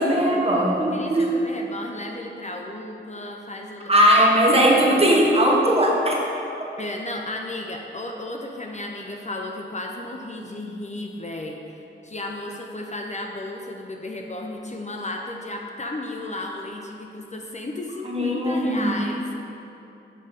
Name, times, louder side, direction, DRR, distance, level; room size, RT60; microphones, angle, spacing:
voice 1, 0.0-1.3 3.9-6.2 18.0-19.0, equal, 30° right, -2 dB, 1.1 m, -19 dB
voice 2, 0.9-3.9 6.8-19.3, left 2 dB, 35° left, 1 dB, 0.5 m, -34 dB
7.6 x 3.7 x 5.1 m, 2.8 s
wide cardioid pair, 70°, 21 cm